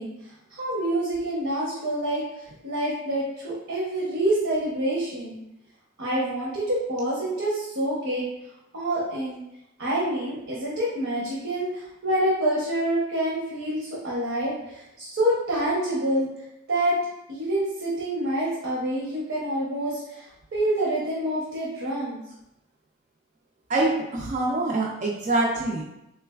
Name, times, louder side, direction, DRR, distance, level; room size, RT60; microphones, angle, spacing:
voice 1, 0.0-5.4 6.0-8.3 8.7-9.4 9.8-16.3 16.7-16.9 17.3-22.2, right 1 dB, 70° right, -6 dB, 0.8 m, -27 dB
voice 2, 23.7-25.8, right 2 dB, 35° right, -3 dB, 0.3 m, -25 dB
3.8 x 3.2 x 2.3 m, 0.89 s
head